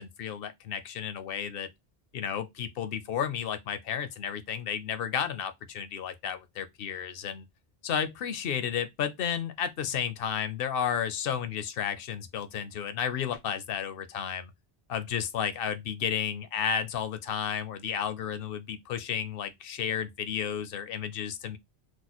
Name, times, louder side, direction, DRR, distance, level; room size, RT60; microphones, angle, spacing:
voice 1, 0.0-1.7 2.1-7.4 7.8-14.5 14.9-21.6, left 8 dB, 65° left, 0.8 m, -32 dB
3.0 x 2.1 x 3.9 m
omnidirectional pair, 1.1 m